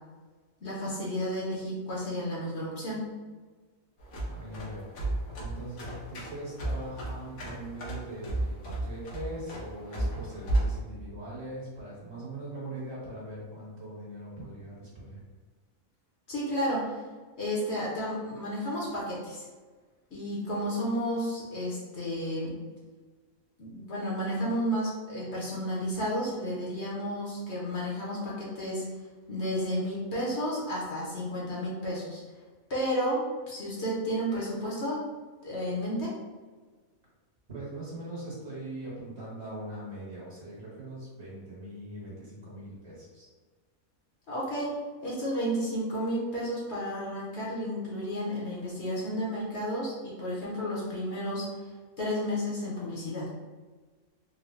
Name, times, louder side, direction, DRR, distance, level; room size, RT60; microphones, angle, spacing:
voice 1, 0.6-3.0 16.3-17.0 17.4-19.5 20.1-22.5 23.6-28.9 29.3-32.2 32.7-35.0 35.4-36.1 44.3-44.7 45.0-51.4 52.0-53.3, equal, 55° left, -6 dB, 1.1 m, -32 dB
sound 1, 4.0-10.8, right 1 dB, 80° left, 1.3 m, -33 dB
voice 2, 4.3-4.8 5.4-15.2 37.5-43.3, right 1 dB, 50° right, -7 dB, 1.6 m, -41 dB
3.8 x 2.1 x 3.2 m, 1.4 s
omnidirectional pair, 1.5 m